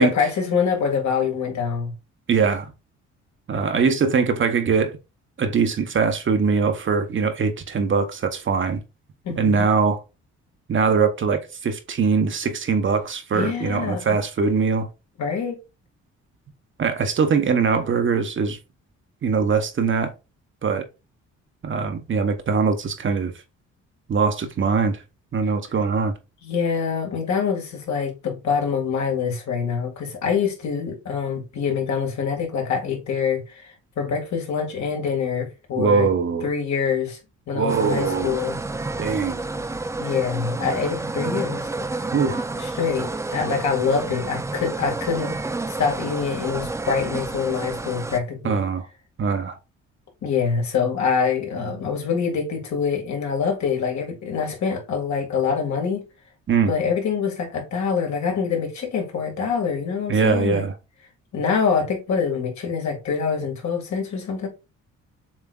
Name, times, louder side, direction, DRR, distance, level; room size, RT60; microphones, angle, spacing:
voice 1, 0.0-1.9 9.2-9.7 13.3-14.2 15.2-15.6 26.4-36.1 36.4-37.2 37.5-38.6 40.0-41.7 42.6-45.3 45.7-48.6 50.2-56.0 56.7-60.7 61.3-64.5, left 6 dB, 65° left, 2.0 m, -25 dB
voice 2, 2.3-2.7 3.5-4.9 5.4-8.8 9.4-10.0 10.7-14.9 16.8-18.6 19.2-20.1 20.6-20.8 21.6-23.3 24.1-25.0 25.3-26.1 35.8-36.5 37.5-38.4 39.0-39.4 42.1-42.5 48.4-48.9 49.2-49.6 56.5-56.7 60.1-60.7, right 5 dB, 40° right, 0.9 m, -22 dB
sound 1, 37.7-48.2, right 3 dB, 10° right, 0.4 m, -30 dB
7.2 x 3.2 x 2.3 m
cardioid pair, 90°, 30 cm